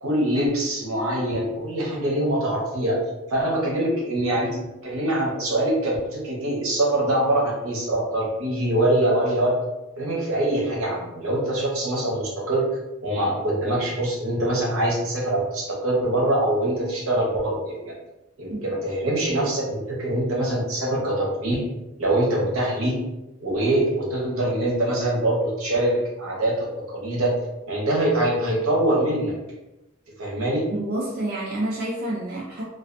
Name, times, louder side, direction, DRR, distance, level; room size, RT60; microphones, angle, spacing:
voice 1, 0.0-3.0 3.3-9.5 10.0-12.6 13.0-17.8 18.4-21.6 22.0-23.0 23.4-27.4 27.7-29.3 30.2-30.7, right 1 dB, 70° right, -3 dB, 0.8 m, -24 dB
voice 2, 30.7-32.6, right 1 dB, 45° right, -4 dB, 0.4 m, -28 dB
2.3 x 2.2 x 2.4 m, 0.98 s
head